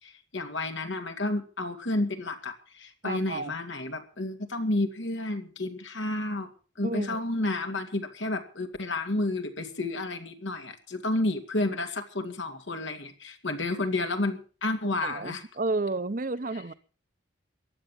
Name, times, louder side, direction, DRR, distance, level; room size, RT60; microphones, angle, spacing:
voice 1, 0.0-6.5 6.8-15.4, left 2 dB, 80° left, 2.5 m, -31 dB
voice 2, 3.0-3.5 6.8-7.2 15.0-16.7, right 3 dB, 45° right, 0.8 m, -31 dB
15.0 x 10.5 x 7.3 m
head